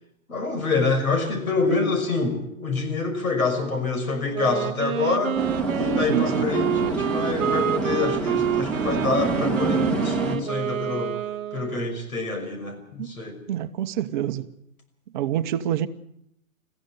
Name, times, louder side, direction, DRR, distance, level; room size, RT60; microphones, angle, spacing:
voice 1, 0.3-5.4 5.7-11.2 11.5-13.4, left 4 dB, 85° left, 6.0 m, -26 dB
Wind instrument woodwind instrument, 4.3-12.0, right 10 dB, 65° right, 1.0 m, -28 dB
sound 1, 5.3-10.4, right 3 dB, 5° left, 2.3 m, -27 dB
voice 2, 6.1-6.5 13.0-13.2 13.5-14.4 15.1-15.9, right 11 dB, 35° right, 0.9 m, -26 dB
21.5 x 15.0 x 8.0 m
hypercardioid pair, 145°, 42 cm